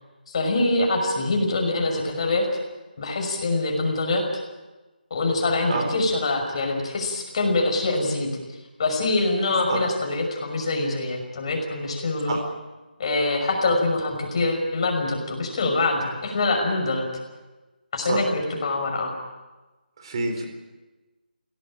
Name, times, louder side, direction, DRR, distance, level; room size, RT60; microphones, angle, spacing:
voice 1, 0.3-2.5 3.0-4.3 5.1-8.3 8.8-12.4 13.0-17.1 17.9-19.1, left 2 dB, 35° left, 3 dB, 5.9 m, -24 dB
voice 2, 20.0-20.4, right 3 dB, 30° right, 5 dB, 4.5 m, -27 dB
23.0 x 17.5 x 9.0 m, 1.2 s
figure-of-eight pair, 165°, 5 cm